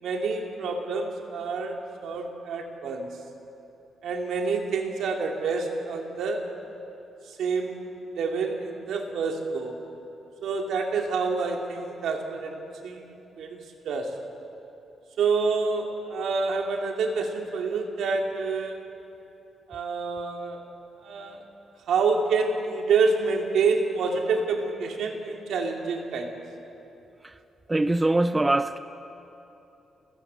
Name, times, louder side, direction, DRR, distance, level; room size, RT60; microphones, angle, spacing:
voice 1, 0.0-3.2 4.0-6.5 7.3-7.9 8.1-9.8 10.4-13.0 13.4-13.6 13.8-14.2 15.2-18.8 19.7-20.6 21.0-21.4 21.9-26.4, right 4 dB, 75° right, 2 dB, 2.6 m, -27 dB
voice 2, 27.7-28.8, right 2 dB, 10° right, 11 dB, 0.4 m, -23 dB
30.0 x 14.5 x 8.3 m, 3.0 s
wide cardioid pair, 180°, 0 cm